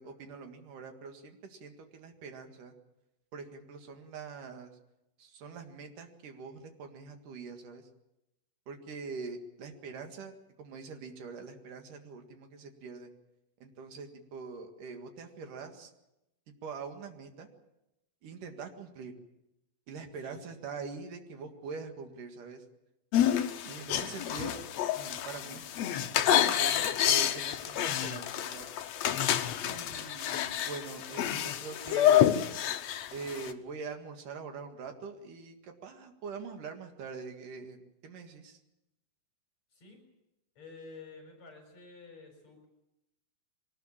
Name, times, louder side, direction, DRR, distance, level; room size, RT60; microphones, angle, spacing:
voice 1, 0.0-2.7 3.3-4.7 5.2-7.9 8.7-13.1 13.6-15.9 16.6-17.5 18.2-19.1 19.9-22.6 23.7-24.6 24.9-25.7 26.1-28.7 29.6-32.3 33.1-38.6, right 5 dB, 65° right, 5 dB, 3.4 m, -44 dB
sound 1, 23.1-33.5, left 11 dB, 75° left, 1.6 m, -28 dB
voice 2, 39.7-40.0 40.6-42.7, left 4 dB, 45° left, 3 dB, 5.6 m, -50 dB
23.0 x 19.0 x 7.3 m, 0.89 s
omnidirectional pair, 4.3 m